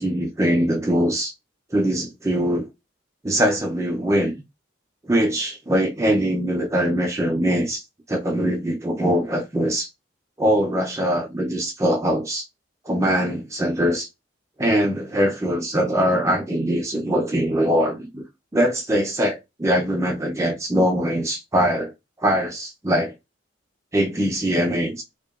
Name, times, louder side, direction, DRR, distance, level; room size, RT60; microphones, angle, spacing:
voice 1, 0.0-1.3 1.7-2.6 3.2-4.4 5.1-7.8 8.1-9.9 10.4-12.4 12.9-14.1 14.6-18.2 18.5-21.9 22.2-23.1 23.9-25.0, equal, 15° right, 0.4 m, -22 dB
2.8 x 2.1 x 2.3 m
head